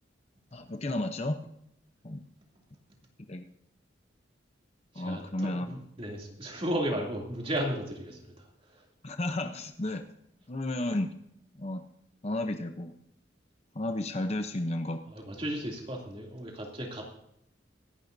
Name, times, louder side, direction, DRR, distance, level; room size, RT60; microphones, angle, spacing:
voice 1, 0.5-1.4 2.0-2.2 3.3-3.4 4.9-5.8 9.0-10.1 10.5-11.1 11.6-11.8 12.2-12.9 13.7-15.0, left 1 dB, 35° left, 6 dB, 0.8 m, -32 dB
voice 2, 4.9-8.5 8.7-8.8 15.2-17.0, equal, 30° right, -1 dB, 2.8 m, -34 dB
24.5 x 11.0 x 2.7 m, 0.78 s
head